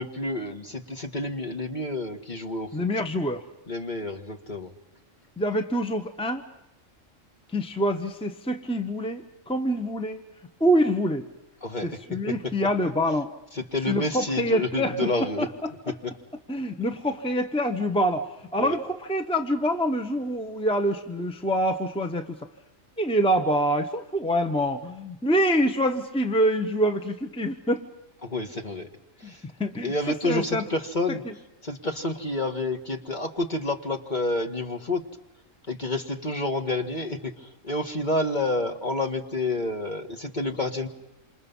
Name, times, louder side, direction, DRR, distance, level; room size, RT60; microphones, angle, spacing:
voice 1, 0.0-2.9 3.7-4.7 11.6-12.0 12.3-12.4 13.5-15.5 16.0-16.1 18.6-18.8 28.2-28.9 29.2-29.4 29.8-31.2 31.6-35.0 35.7-40.9, left 2 dB, 35° left, 4 dB, 1.8 m, -29 dB
voice 2, 2.7-3.4 5.4-6.4 7.5-10.2 10.6-11.3 11.8-13.3 13.9-15.7 16.5-22.4 23.0-27.8 29.2-29.3 29.6-29.9 30.2-30.6 31.2-31.3, equal, 5° left, 7 dB, 1.1 m, -26 dB
27.5 x 27.0 x 5.5 m, 0.89 s
omnidirectional pair, 1.3 m